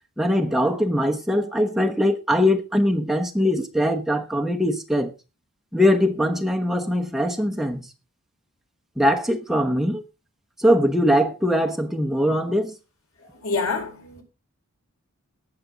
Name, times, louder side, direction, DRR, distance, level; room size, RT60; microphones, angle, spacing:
voice 1, 0.2-5.1 5.7-7.9 9.0-10.0 10.6-12.7, equal, ahead, 1.0 m, -21 dB
voice 2, 13.2-14.2, left 4 dB, 85° left, 4.6 m, -28 dB
18.0 x 7.7 x 3.9 m
head